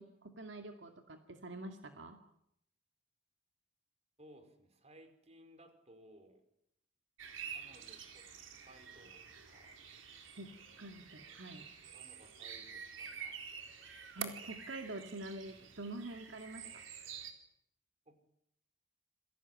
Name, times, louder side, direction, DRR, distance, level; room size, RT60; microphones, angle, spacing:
voice 1, 0.0-2.2 10.4-10.5 10.8-11.7 14.1-16.8, right 2 dB, 70° right, 5 dB, 2.3 m, -46 dB
voice 2, 4.2-6.4 7.5-9.8 11.1-11.2 11.9-13.5 15.6-15.7 16.6-16.8 18.1-18.2, right 1 dB, 35° right, 8 dB, 5.0 m, -61 dB
sound 1, 7.2-17.3, right 7 dB, 85° right, 4.0 m, -48 dB
28.5 x 22.5 x 9.3 m, 0.75 s
head